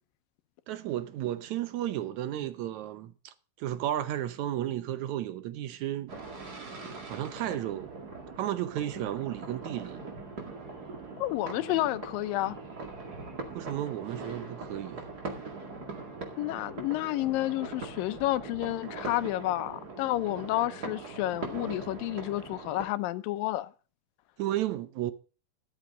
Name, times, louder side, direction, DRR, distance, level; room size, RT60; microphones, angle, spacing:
voice 1, 0.7-6.1 7.1-7.9 8.4-10.0 13.5-15.1 24.4-25.1, right 12 dB, 70° right, 1.9 m, -33 dB
sound 1, 6.1-22.9, right 3 dB, 30° right, 2.2 m, -41 dB
voice 2, 11.2-12.6 16.4-23.7, left 16 dB, 85° left, 2.5 m, -30 dB
13.0 x 12.5 x 3.8 m
omnidirectional pair, 4.0 m